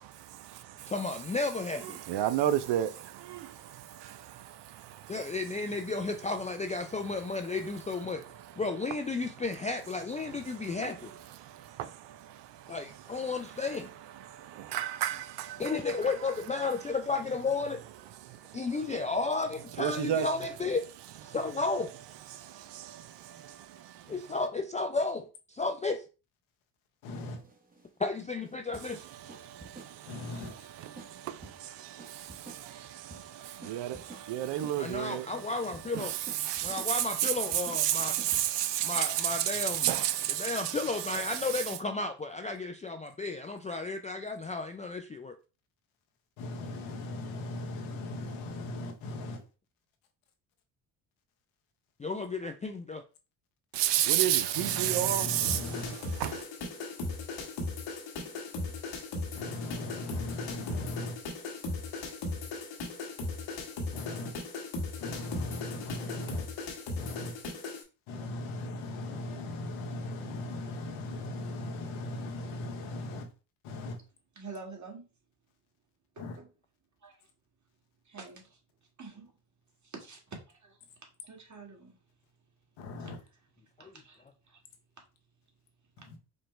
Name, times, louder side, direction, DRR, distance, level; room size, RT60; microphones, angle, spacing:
voice 1, 0.0-0.9 1.8-5.9 6.8-7.8 8.1-8.6 10.2-16.1 16.6-16.9 18.1-19.1 19.8-20.3 21.3-21.5 22.3-24.4 28.8-30.3 30.7-41.8 53.7-56.5, right 12 dB, 65° right, 0.6 m, -34 dB
voice 2, 0.9-2.0 5.1-8.2 8.6-11.1 12.7-13.9 15.6-17.8 18.5-20.8 21.2-21.9 24.1-26.0 28.0-29.0 34.8-36.1 36.6-38.1 38.8-39.9 40.4-45.4 52.0-53.0 83.8-83.9, left 3 dB, 15° left, 0.4 m, -33 dB
voice 3, 27.0-27.4 30.1-30.5 46.4-49.4 54.5-56.0 59.3-61.2 63.9-64.4 65.0-66.5 67.0-67.4 68.1-73.3 73.6-74.0 76.2-76.4 82.8-83.2 86.0-86.2, left 2 dB, 90° left, 1.0 m, -38 dB
sound 1, 27.4-39.4, right 3 dB, 20° right, 1.0 m, -51 dB
sound 2, 55.4-67.8, left 3 dB, 70° left, 1.3 m, -37 dB
voice 4, 74.3-75.1 76.1-76.4 77.0-77.2 78.0-78.6 79.0-79.3 79.8-82.0 83.0-83.1 83.8-84.6 86.0-86.1, right 4 dB, 40° right, 1.6 m, -48 dB
5.1 x 2.2 x 3.1 m
supercardioid pair, 70°, 45 cm